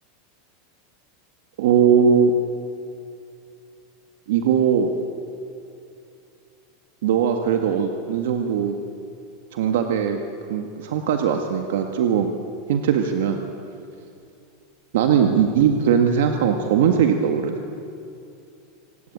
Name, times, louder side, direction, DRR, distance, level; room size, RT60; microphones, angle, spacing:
voice 1, 1.6-2.3 4.3-4.9 7.0-8.8 9.5-10.2 10.5-12.3 12.7-13.4 14.9-17.6, right 7 dB, 80° right, 5 dB, 1.8 m, -20 dB
27.0 x 16.5 x 8.9 m, 2.6 s
supercardioid pair, 155°, 0 cm